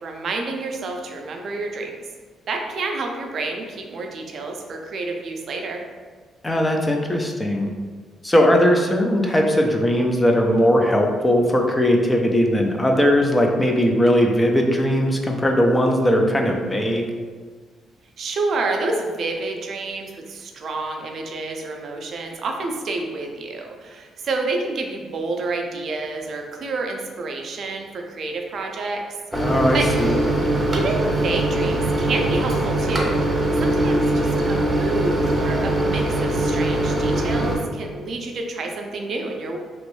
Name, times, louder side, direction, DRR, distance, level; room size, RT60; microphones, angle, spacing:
voice 1, 0.0-2.0 2.5-5.8 18.2-29.0 29.4-29.9 30.7-33.3 33.6-39.6, right 3 dB, 60° right, 2 dB, 0.4 m, -29 dB
voice 2, 6.4-7.7 8.2-17.1 29.4-30.2, equal, 15° left, 2 dB, 0.4 m, -19 dB
Microwave oven, 29.3-37.6, right 1 dB, 20° right, 0.7 m, -21 dB
3.0 x 2.5 x 3.1 m, 1.5 s
cardioid pair, 90°, 0 cm